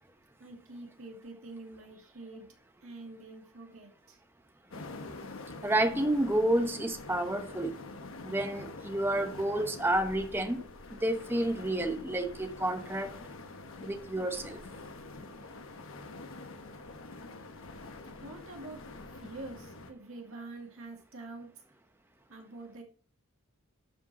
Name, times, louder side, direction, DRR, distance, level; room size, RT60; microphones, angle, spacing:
voice 1, 0.4-2.5 2.8-4.2 17.7-17.8 18.2-21.5 22.3-22.8, right 2 dB, 65° right, 2.1 m, -46 dB
sound 1, 4.7-19.9, left 2 dB, 60° left, 1.0 m, -46 dB
voice 2, 5.6-7.7 8.2-10.6 11.0-13.1 13.8-14.6, right 1 dB, 10° right, 0.9 m, -30 dB
11.5 x 5.2 x 4.1 m
head